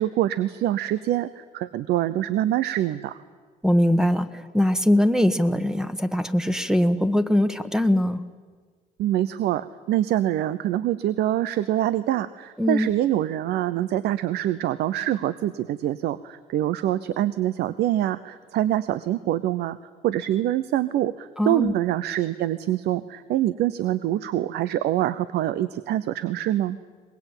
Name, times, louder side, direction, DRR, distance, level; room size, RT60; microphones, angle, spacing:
voice 1, 0.0-3.2 9.0-19.8 20.0-26.8, right 13 dB, 75° right, 15 dB, 0.8 m, -25 dB
voice 2, 3.6-8.3 12.6-12.9 21.4-21.7, left 1 dB, 5° right, 11 dB, 1.3 m, -21 dB
23.0 x 20.5 x 9.0 m, 1.5 s
cardioid pair, 110°, 17 cm